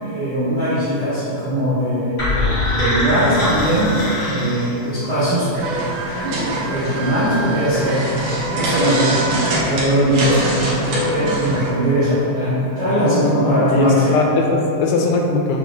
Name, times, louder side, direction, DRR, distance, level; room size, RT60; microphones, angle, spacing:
voice 1, 0.0-5.5 6.2-8.0 8.5-14.2, right 1 dB, 75° right, -16 dB, 0.9 m, -20 dB
sound 1, 2.2-5.2, left 1 dB, 75° left, 0.7 m, -22 dB
sound 2, 5.5-11.7, right 1 dB, 90° right, 1.4 m, -23 dB
voice 2, 13.0-15.6, left 3 dB, 90° left, 0 dB, 2.3 m, -20 dB
5.9 x 2.1 x 3.0 m, 2.7 s
omnidirectional pair, 4.0 m